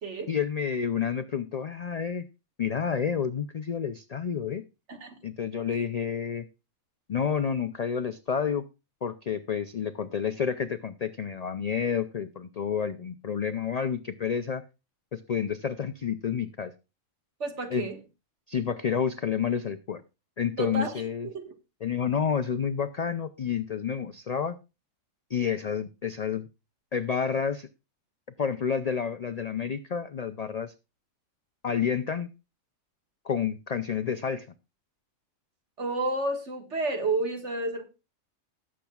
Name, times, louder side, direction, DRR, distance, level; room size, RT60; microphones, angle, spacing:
voice 1, 0.3-2.2 2.6-4.6 5.2-6.5 7.1-8.6 9.0-14.6 15.1-16.7 17.7-17.9 18.5-20.0 20.4-21.3 21.8-24.6 25.3-26.5 26.9-27.7 28.4-30.7 31.6-32.3 33.2-34.5, left 7 dB, 70° left, 10 dB, 0.3 m, -29 dB
voice 2, 17.4-18.0 20.6-21.5 35.8-37.8, right 2 dB, 60° right, 5 dB, 2.0 m, -31 dB
19.0 x 7.5 x 2.3 m, 0.28 s
omnidirectional pair, 1.4 m